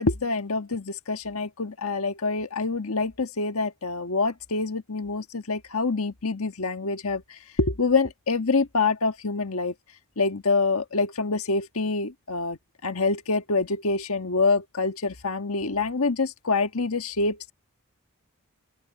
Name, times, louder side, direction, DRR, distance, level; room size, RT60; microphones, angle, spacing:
voice 1, 0.0-9.7 10.2-17.5, left 3 dB, 85° left, 1.5 m, -26 dB
open air
head